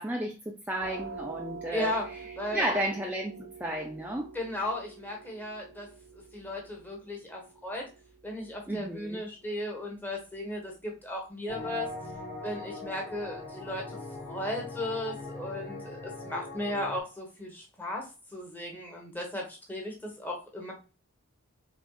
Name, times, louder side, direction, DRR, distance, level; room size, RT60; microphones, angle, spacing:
voice 1, 0.0-2.0 2.5-4.3 8.7-9.2, right 1 dB, 10° right, 1 dB, 0.3 m, -32 dB
sound 1, 0.8-12.3, right 5 dB, 70° right, 0.8 m, -48 dB
voice 2, 1.7-2.1 2.4-2.8 4.3-5.9 6.1-7.8 8.2-11.9 12.4-20.7, left 1 dB, 10° left, 0 dB, 1.0 m, -36 dB
sound 2, 11.5-17.0, left 2 dB, 60° left, 1.3 m, -41 dB
4.3 x 3.6 x 2.3 m, 0.33 s
head